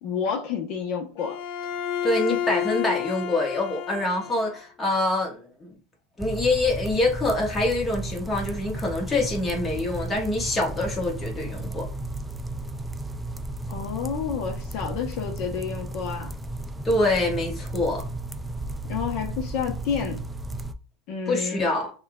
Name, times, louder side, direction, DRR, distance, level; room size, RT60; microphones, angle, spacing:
voice 1, 0.0-1.4 13.7-16.3 18.9-20.2 21.1-21.7, left 7 dB, 55° left, 0.8 m, -30 dB
Bowed string instrument, 1.2-4.6, left 10 dB, 75° left, 0.5 m, -30 dB
voice 2, 2.0-5.7 6.2-11.9 16.8-18.0 21.3-21.9, left 2 dB, 15° left, 1.2 m, -25 dB
sound 1, 6.2-20.7, right 2 dB, 10° right, 0.3 m, -34 dB
6.5 x 2.4 x 2.3 m
supercardioid pair, 140°, 0 cm